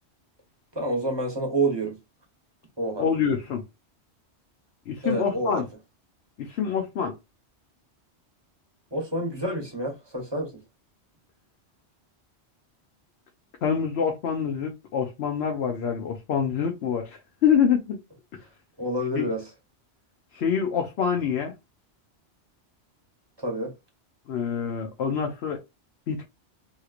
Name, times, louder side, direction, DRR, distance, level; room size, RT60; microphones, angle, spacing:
voice 1, 0.7-1.9 2.8-3.1 5.0-5.6 8.9-10.5 18.8-19.5 23.4-23.7, right 1 dB, 25° right, 1.0 m, -28 dB
voice 2, 3.0-3.6 4.9-5.6 6.4-7.1 13.6-18.0 19.1-19.3 20.3-21.5 24.3-25.6 26.1-26.3, left 7 dB, 70° left, 0.9 m, -26 dB
2.9 x 2.9 x 2.4 m
omnidirectional pair, 1.2 m